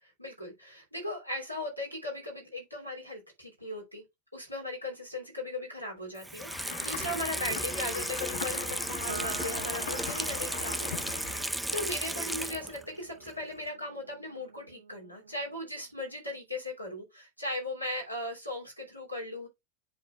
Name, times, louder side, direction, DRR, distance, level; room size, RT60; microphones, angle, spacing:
voice 1, 0.0-4.0 4.3-19.5, left 1 dB, 90° left, 2.8 m, -38 dB
Water tap faucet / Sink (filling or washing), 6.2-12.9 13.3-13.4, right 1 dB, 5° right, 0.4 m, -35 dB
sound 1, 6.5-11.5, left 8 dB, 60° left, 0.9 m, -41 dB
Piano, 9.1-15.8, right 7 dB, 65° right, 0.9 m, -47 dB
10.5 x 3.8 x 2.3 m
figure-of-eight pair, 90°, 0 cm